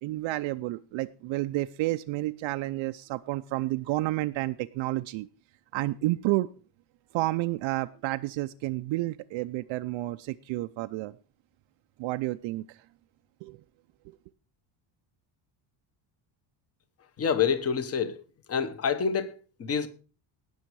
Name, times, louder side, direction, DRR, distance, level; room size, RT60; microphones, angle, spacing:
voice 1, 0.0-5.3 5.7-6.5 7.1-11.1 12.0-12.8 13.4-13.6, right 18 dB, 65° right, 0.6 m, -30 dB
voice 2, 17.2-18.2 18.5-19.9, left 6 dB, 30° left, 1.1 m, -27 dB
18.0 x 6.4 x 4.7 m
cardioid pair, 165°, 50 cm